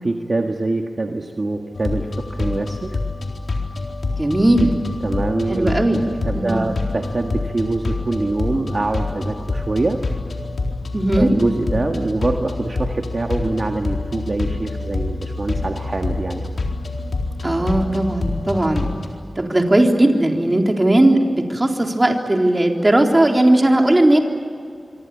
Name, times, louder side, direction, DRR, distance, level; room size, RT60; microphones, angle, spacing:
voice 1, 0.0-3.0 5.0-5.8 6.3-10.0 11.2-16.5, right 2 dB, 50° right, 3 dB, 1.8 m, -24 dB
sound 1, 1.7-19.1, left 3 dB, 80° left, 4.1 m, -26 dB
voice 2, 4.2-4.8 5.5-6.1 6.3-6.7 10.9-11.3 17.4-18.9 19.4-24.2, right 1 dB, 25° right, 2 dB, 4.0 m, -17 dB
26.5 x 24.5 x 8.5 m, 2.3 s
wide cardioid pair, 75°, 0 cm